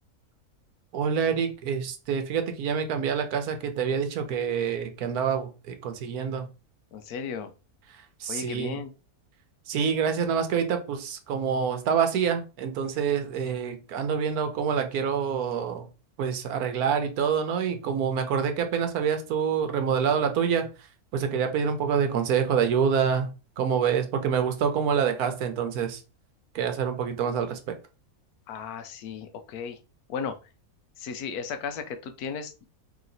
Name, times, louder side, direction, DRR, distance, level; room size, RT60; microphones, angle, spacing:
voice 1, 0.9-6.5 8.2-8.8 9.7-15.9 16.2-20.7 21.1-23.3 23.6-26.0 26.5-27.7, right 7 dB, 80° right, 7 dB, 1.2 m, -26 dB
voice 2, 6.9-7.5 8.3-8.9 28.5-29.8 30.1-30.3 31.0-32.7, left 6 dB, 85° left, 8 dB, 1.1 m, -35 dB
3.2 x 3.0 x 3.8 m, 0.32 s
omnidirectional pair, 1.6 m